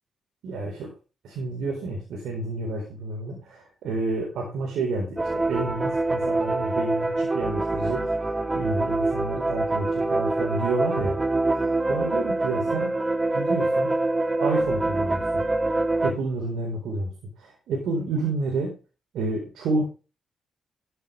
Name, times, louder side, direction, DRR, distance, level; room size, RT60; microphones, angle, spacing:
voice 1, 0.4-0.9 1.2-8.1 8.5-11.2 11.6-12.9 13.3-13.9 14.4-15.4 16.0-17.1 17.4-18.7 19.1-19.8, right 3 dB, 80° right, 1 dB, 4.2 m, -30 dB
sound 1, 5.2-16.1, right 2 dB, 25° right, 1.7 m, -25 dB
12.0 x 10.0 x 3.3 m, 0.32 s
supercardioid pair, 55°, 0 cm